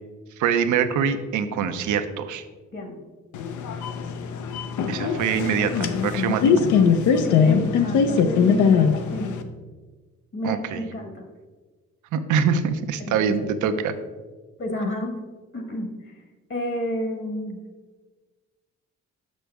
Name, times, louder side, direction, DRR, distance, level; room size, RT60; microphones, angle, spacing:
voice 1, 0.4-2.4 4.9-6.5 10.4-10.8 12.1-13.9, right 7 dB, 80° right, 9 dB, 0.6 m, -24 dB
sound 1, 3.3-9.4, left 6 dB, 75° left, 0.6 m, -21 dB
voice 2, 7.1-9.4 10.3-11.2 13.0-13.5 13.7-13.9 14.6-15.2 15.5-16.1 16.5-17.6, equal, 40° left, 4 dB, 1.2 m, -30 dB
6.3 x 6.1 x 3.4 m, 1.3 s
cardioid pair, 90°, 30 cm